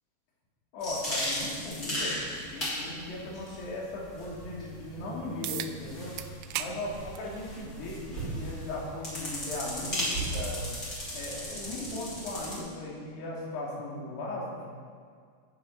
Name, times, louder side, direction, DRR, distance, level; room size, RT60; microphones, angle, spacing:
voice 1, 0.7-6.2 6.6-10.6 11.1-14.7, left 2 dB, 85° left, -4 dB, 4.8 m, -37 dB
sound 1, 0.8-12.6, equal, 25° left, 3.5 m, -36 dB
sound 2, 5.4-5.7 6.2-6.7 7.1-7.3 8.4-8.5 13.4-13.5, right 12 dB, 80° right, 2.5 m, -35 dB
16.0 x 9.4 x 5.5 m, 2.1 s
omnidirectional pair, 4.7 m